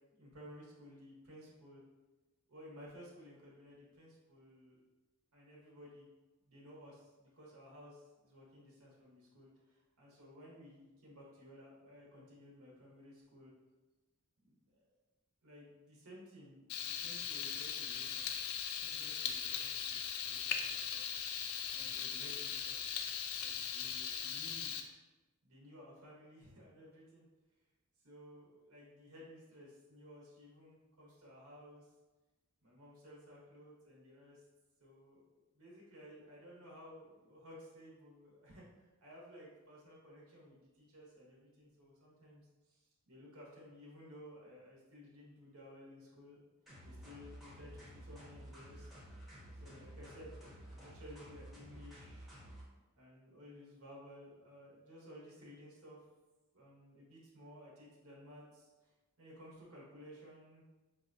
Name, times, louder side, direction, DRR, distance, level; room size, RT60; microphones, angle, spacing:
voice 1, 0.1-1.8 2.5-4.8 5.3-6.1 6.4-13.5 14.4-14.6 15.4-18.3 18.8-20.0 20.2-21.0 21.7-23.0 23.3-24.7 25.4-27.3 28.0-31.9 32.6-34.4 34.8-35.2 35.5-42.4 42.7-46.4 46.8-48.9 49.6-50.3 50.7-52.3 53.0-56.0 56.5-58.9 59.2-60.6, equal, 75° right, -4 dB, 0.9 m, -56 dB
Frying (food), 16.7-24.8, left 7 dB, 80° left, 0.4 m, -39 dB
sound 1, 46.7-52.6, right 1 dB, ahead, 0.7 m, -52 dB
5.0 x 2.1 x 2.5 m, 1.1 s
head